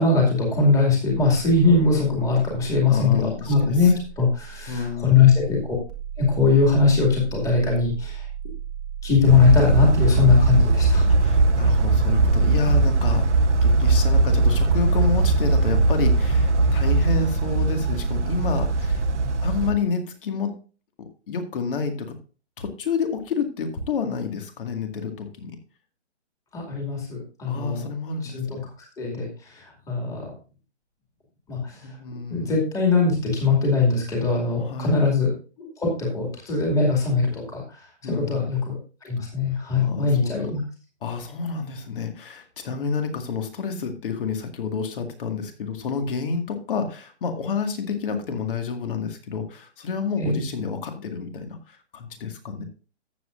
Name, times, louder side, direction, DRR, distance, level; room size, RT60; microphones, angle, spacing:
voice 1, 0.0-3.9 4.2-5.8 6.2-8.3 9.0-11.1 26.5-27.9 28.3-28.6 29.0-29.3 29.6-30.2 31.5-31.8 32.3-35.3 35.6-37.6 38.1-38.7 39.0-40.6 50.2-50.4, left 4 dB, 10° left, -1 dB, 2.3 m, -21 dB
sound 1, 1.1-14.9, right 7 dB, 10° right, 1.1 m, -36 dB
voice 2, 2.9-3.9 4.7-5.3 11.1-13.3 13.6-19.1 19.4-20.6 21.0-22.2 22.6-25.6 27.5-28.6 31.8-32.6 34.6-35.0 38.0-38.6 39.7-40.6 41.0-52.6, left 5 dB, 50° left, 6 dB, 2.1 m, -29 dB
sound 2, 9.3-19.7, right 3 dB, 80° right, 1.1 m, -20 dB
14.0 x 7.7 x 2.6 m, 0.35 s
hypercardioid pair, 150°, 35 cm